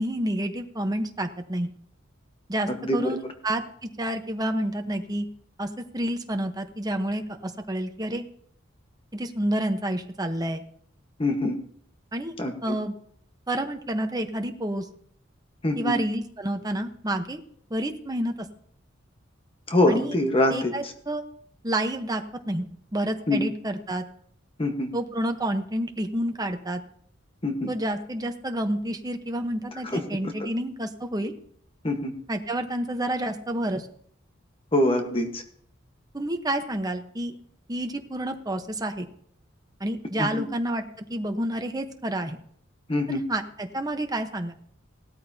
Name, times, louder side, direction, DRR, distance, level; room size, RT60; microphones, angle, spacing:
voice 1, 0.0-1.7 2.5-5.3 5.6-8.2 9.1-10.6 12.1-12.3 12.6-13.0 13.5-14.9 15.8-17.4 17.7-18.3 19.9-20.2 20.5-21.2 21.6-24.0 24.9-26.8 27.7-31.3 32.3-33.8 36.1-37.4 37.7-39.1 39.8-42.4 43.1-44.5, right 1 dB, 20° right, 5 dB, 1.0 m, -29 dB
voice 2, 2.7-3.1 11.2-11.6 12.4-12.8 15.6-15.9 19.7-20.9 23.3-23.4 24.6-24.9 27.4-27.7 29.8-30.0 31.8-32.1 34.7-35.4 40.2-40.4 42.9-43.2, left 1 dB, 30° left, 4 dB, 1.3 m, -24 dB
17.5 x 13.5 x 2.8 m, 0.63 s
head